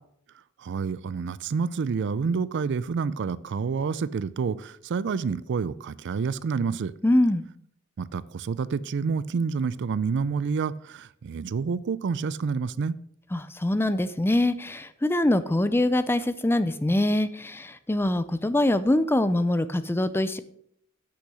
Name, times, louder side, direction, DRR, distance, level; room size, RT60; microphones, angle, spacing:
voice 1, 0.6-6.9 8.0-13.0, right 5 dB, 55° right, 18 dB, 0.4 m, -28 dB
voice 2, 7.0-7.4 13.3-20.4, left 1 dB, 10° left, 13 dB, 0.5 m, -24 dB
8.5 x 6.4 x 6.2 m, 0.69 s
head